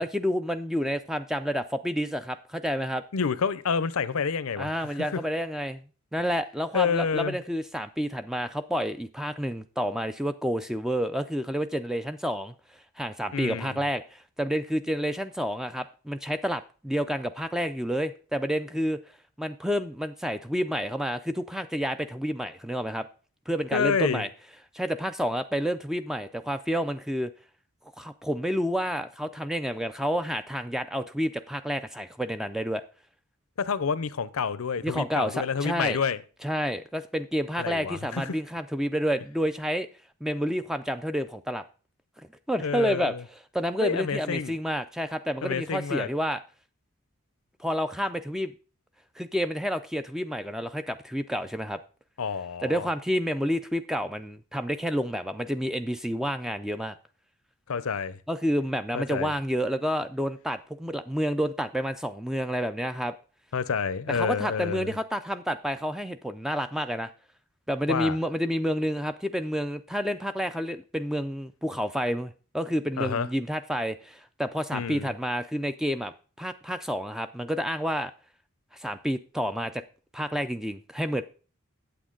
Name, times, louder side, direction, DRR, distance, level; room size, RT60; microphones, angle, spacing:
voice 1, 0.0-3.0 4.6-5.8 6.1-12.5 13.0-19.0 19.4-23.1 23.5-24.3 24.7-27.3 28.0-32.8 34.8-36.0 36.4-39.9 40.2-41.6 42.2-43.1 43.5-46.4 47.6-48.5 49.2-51.8 52.6-56.9 58.3-63.1 64.1-67.1 67.7-76.1 76.4-78.1 78.7-79.8 80.1-81.2, equal, ahead, 0.3 m, -29 dB
voice 2, 3.1-5.2 6.7-7.4 13.3-13.8 23.7-24.3 33.6-36.2 37.6-38.4 42.6-43.2 43.8-44.5 45.4-46.1 52.2-52.9 57.7-58.2 58.9-59.3 63.5-64.9 67.9-68.2 73.0-73.3 74.7-75.1, left 6 dB, 80° left, 0.6 m, -28 dB
8.6 x 8.0 x 3.8 m
head